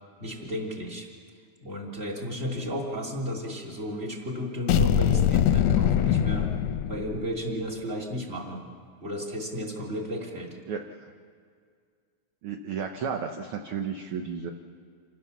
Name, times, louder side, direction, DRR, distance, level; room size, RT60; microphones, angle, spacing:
voice 1, 0.2-1.1 1.6-6.5 6.9-8.6 9.0-10.6, equal, 20° right, -1 dB, 3.0 m, -33 dB
sound 1, 4.7-7.5, left 9 dB, 75° left, 1.7 m, -23 dB
voice 2, 10.7-11.1 12.4-14.5, right 6 dB, 60° right, 4 dB, 1.6 m, -33 dB
27.5 x 16.0 x 7.2 m, 2.1 s
omnidirectional pair, 3.4 m